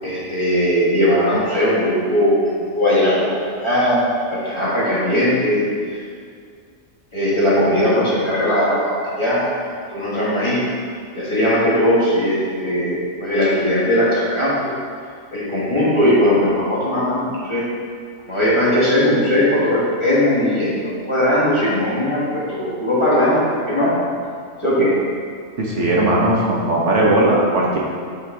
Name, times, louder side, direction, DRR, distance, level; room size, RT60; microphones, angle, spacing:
voice 1, 0.0-4.0 4.3-5.6 5.9-6.0 7.1-10.6 11.1-14.7 15.3-17.6 18.3-23.9 24.6-24.9, equal, 20° left, -9 dB, 1.5 m, -19 dB
voice 2, 25.6-27.8, right 1 dB, 65° right, -3 dB, 1.2 m, -17 dB
8.2 x 4.4 x 3.4 m, 2.1 s
omnidirectional pair, 1.4 m